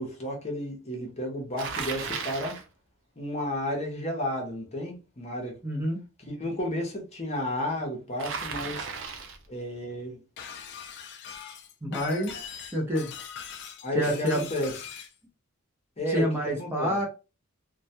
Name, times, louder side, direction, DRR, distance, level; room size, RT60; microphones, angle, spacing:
voice 1, 0.0-2.6 3.2-5.6 6.2-8.9 9.5-10.2 13.8-14.8 16.0-16.9, left 1 dB, 30° left, 0.7 m, -32 dB
Bicycle, 1.6-2.7 8.2-9.5, right 5 dB, 60° right, 0.5 m, -35 dB
voice 2, 5.6-6.0 11.8-12.4 12.7-13.1 13.9-14.4 16.1-17.1, equal, 10° right, 0.5 m, -27 dB
Shatter, 10.4-15.1, left 7 dB, 50° left, 0.3 m, -41 dB
2.2 x 2.1 x 2.7 m
head